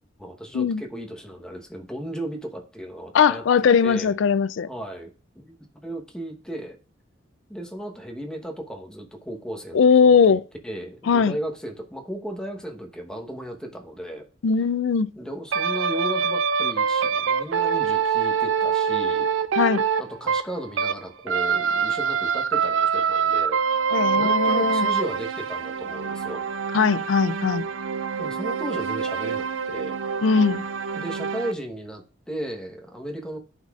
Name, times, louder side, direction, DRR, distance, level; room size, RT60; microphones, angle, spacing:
voice 1, 0.2-3.4 3.8-4.1 4.7-6.8 7.5-14.2 15.2-19.3 20.0-23.6 24.2-26.4 28.2-30.0 30.9-33.4, right 1 dB, 5° left, 1.0 m, -35 dB
voice 2, 3.1-4.7 9.7-10.4 11.1-11.4 14.4-15.1 19.6-19.8 23.9-24.9 26.7-27.7 30.2-30.6, left 6 dB, 65° left, 0.4 m, -19 dB
sound 1, 15.5-21.0 21.3-31.5, right 6 dB, 70° right, 0.5 m, -25 dB
11.5 x 4.1 x 2.4 m
head